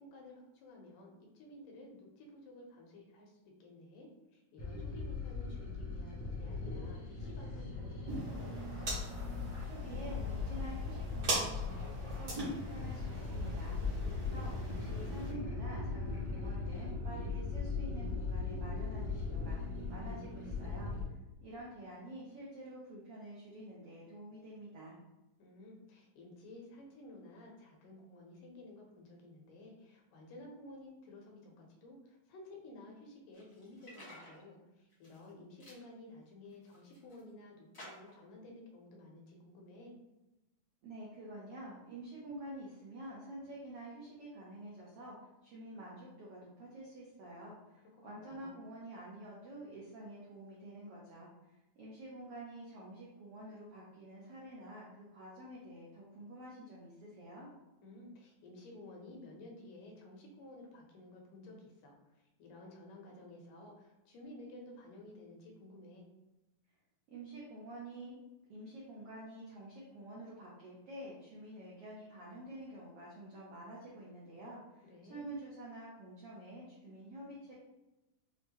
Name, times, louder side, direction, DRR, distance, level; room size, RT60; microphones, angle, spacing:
voice 1, 0.0-8.7 14.1-14.8 25.4-39.9 48.0-48.6 57.8-62.0 62.4-66.1 74.9-75.3, left 1 dB, 80° left, 0 dB, 2.4 m, -53 dB
sound 1, 4.6-21.0, left 4 dB, 65° left, 1.3 m, -39 dB
sound 2, 8.0-15.3, right 2 dB, 60° right, 1.0 m, -42 dB
voice 2, 9.6-19.6 19.9-20.9 21.4-25.0 40.8-57.5 67.1-68.2 68.5-77.5, right 1 dB, 85° right, -5 dB, 1.3 m, -49 dB
sound 3, 33.3-34.4 34.9-35.3 35.6-35.8 36.4-37.2 37.7-38.2, left 1 dB, 40° left, 0.9 m, -54 dB
6.2 x 2.1 x 2.9 m, 1.0 s
omnidirectional pair, 3.8 m